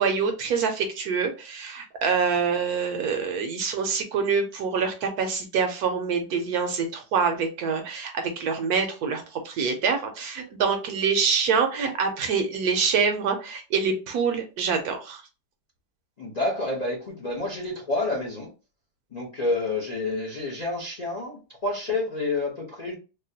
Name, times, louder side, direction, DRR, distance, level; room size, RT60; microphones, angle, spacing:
voice 1, 0.0-15.2, right 5 dB, 70° right, 5 dB, 0.9 m, -25 dB
voice 2, 16.2-18.5 19.1-22.9, left 2 dB, 55° left, -3 dB, 0.4 m, -29 dB
3.5 x 2.2 x 2.7 m, 0.31 s
omnidirectional pair, 1.9 m